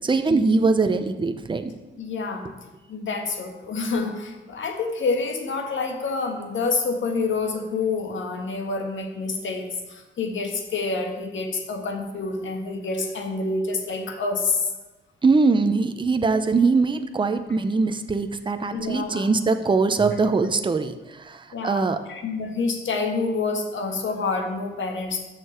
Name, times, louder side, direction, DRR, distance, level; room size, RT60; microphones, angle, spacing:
voice 1, 0.0-1.7 15.2-21.0 21.3-21.4 21.6-22.0, right 4 dB, 25° right, 8 dB, 0.7 m, -22 dB
voice 2, 2.0-2.5 2.9-14.7 16.3-16.4 18.7-19.3 21.5-25.2, left 4 dB, 70° left, 3 dB, 1.7 m, -27 dB
13.5 x 6.8 x 4.4 m, 1.1 s
wide cardioid pair, 130°, 21 cm